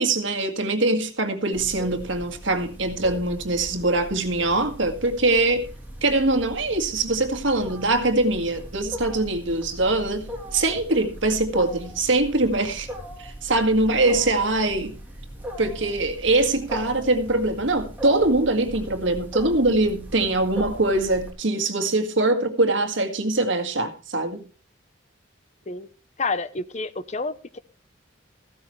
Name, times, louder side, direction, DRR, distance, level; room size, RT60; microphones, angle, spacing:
voice 1, 0.0-5.7 6.0-12.9 13.2-14.9 15.6-24.4, right 2 dB, 70° right, 1.9 m, -23 dB
Wild animals, 1.5-21.3, equal, 10° right, 3.1 m, -39 dB
voice 2, 26.2-27.6, left 3 dB, 35° left, 0.7 m, -29 dB
15.0 x 12.5 x 3.2 m
head